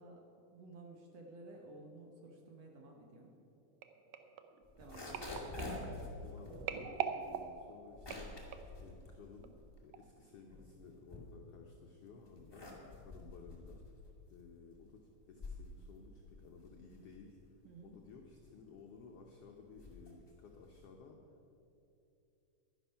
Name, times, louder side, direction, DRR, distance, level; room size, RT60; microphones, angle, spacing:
voice 1, 0.0-3.3 4.8-5.3 17.6-18.0, right 2 dB, 65° right, 1 dB, 1.7 m, -54 dB
Alien Voice Crack, 3.8-8.8 9.4-9.7 9.9-10.0, right 8 dB, 80° right, 1.5 m, -44 dB
sound 1, 4.6-9.9 10.3-11.7 12.2-21.0, left 2 dB, 35° left, 0.4 m, -49 dB
voice 2, 6.2-8.3 8.8-12.7 13.0-13.8 14.3-17.4 17.8-21.2, left 5 dB, 80° left, 1 dB, 1.3 m, -56 dB
11.0 x 11.0 x 5.7 m, 2.8 s
omnidirectional pair, 3.8 m